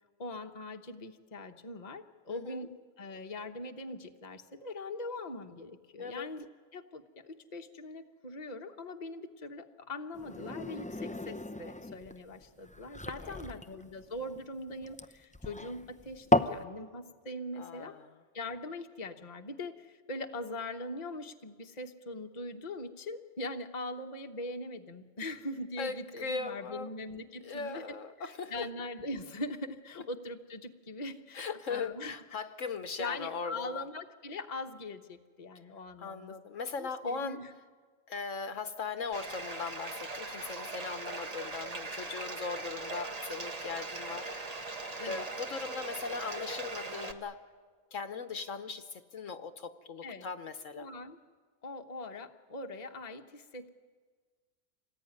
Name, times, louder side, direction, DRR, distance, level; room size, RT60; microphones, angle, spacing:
voice 1, 0.2-6.4 6.7-17.9 18.3-32.2 33.0-36.3 36.8-37.5 45.0-45.2 50.0-50.2 50.7-51.2 51.6-53.7, left 2 dB, 30° left, 4 dB, 1.2 m, -41 dB
voice 2, 2.3-2.8 6.0-6.3 13.2-13.4 17.6-18.1 25.8-26.9 27.4-28.7 31.3-33.9 36.0-37.4 38.1-47.4 47.9-50.9, left 5 dB, 65° left, 9 dB, 1.3 m, -39 dB
sound 1, 10.1-16.6, left 1 dB, 10° left, 0.3 m, -34 dB
Bathtub (filling or washing), 39.1-47.1, right 3 dB, 30° right, 1.2 m, -40 dB
26.0 x 19.5 x 9.6 m, 1.5 s
omnidirectional pair, 1.5 m